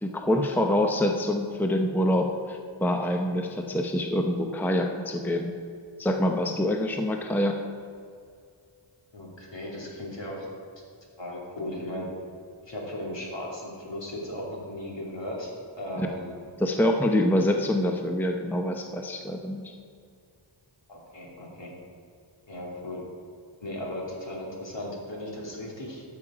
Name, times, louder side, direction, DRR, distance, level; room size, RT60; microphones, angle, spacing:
voice 1, 0.0-5.5 6.0-7.6 16.0-16.1 16.6-19.7, left 1 dB, 5° left, 3 dB, 0.7 m, -26 dB
voice 2, 9.1-10.5 11.2-12.1 12.6-15.5 15.8-16.3 20.9-21.7 22.5-23.0 23.6-26.0, left 1 dB, 60° left, -3 dB, 2.8 m, -36 dB
13.0 x 7.2 x 5.0 m, 2.3 s
wide cardioid pair, 80°, 50 cm